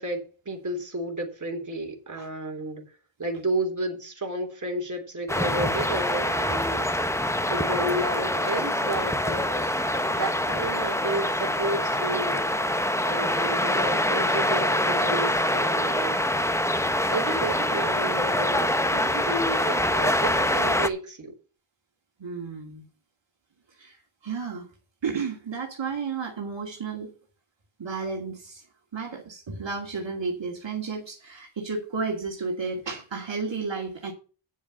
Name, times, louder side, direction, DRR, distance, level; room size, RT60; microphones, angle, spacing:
voice 1, 0.0-2.8 3.2-7.0 7.5-9.6 9.9-12.5 13.0-16.2 17.1-21.3, right 2 dB, 35° right, 3.4 m, -32 dB
sound 1, 5.3-20.9, left 1 dB, 5° left, 0.7 m, -25 dB
voice 2, 22.2-22.9 23.7-24.7 25.0-27.1 27.8-28.6 28.9-34.1, right 4 dB, 60° right, 2.4 m, -32 dB
9.6 x 7.2 x 5.6 m
wide cardioid pair, 125°, 50 cm